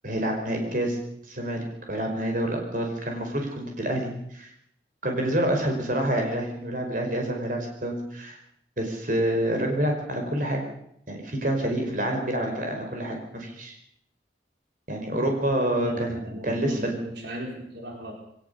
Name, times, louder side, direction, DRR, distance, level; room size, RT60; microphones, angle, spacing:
voice 1, 0.0-1.0 1.3-4.5 5.0-8.4 8.8-10.6 11.1-13.7 14.9-16.2 16.4-16.9, right 1 dB, 45° right, 2 dB, 5.3 m, -27 dB
voice 2, 15.4-18.1, equal, 75° right, 1 dB, 4.4 m, -36 dB
21.5 x 19.0 x 7.0 m, 0.72 s
head